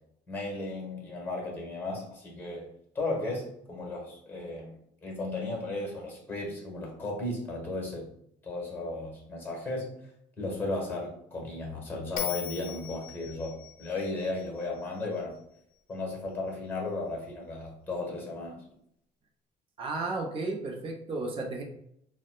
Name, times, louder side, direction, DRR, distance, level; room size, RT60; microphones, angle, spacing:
voice 1, 0.3-2.7 2.9-4.7 5.0-8.1 8.4-9.9 10.4-15.4 15.9-18.6, left 2 dB, 10° left, -1 dB, 1.2 m, -35 dB
Bell, 12.2-15.4, left 11 dB, 55° left, 0.6 m, -39 dB
voice 2, 19.8-21.6, right 3 dB, 30° right, -1 dB, 0.7 m, -33 dB
3.9 x 2.1 x 2.3 m, 0.73 s
cardioid pair, 110°, 17 cm